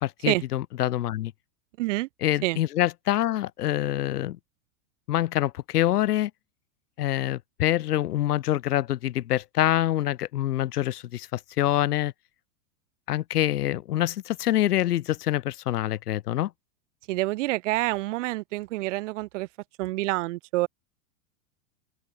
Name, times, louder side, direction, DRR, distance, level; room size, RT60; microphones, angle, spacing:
voice 1, 0.0-1.3 2.2-4.4 5.1-6.3 7.0-12.1 13.1-16.5, left 13 dB, 80° left, 2.1 m, -25 dB
voice 2, 1.8-2.1 2.4-2.6 17.1-19.5 19.8-20.7, right 19 dB, 50° right, 2.6 m, -27 dB
open air
supercardioid pair, 160°, 46 cm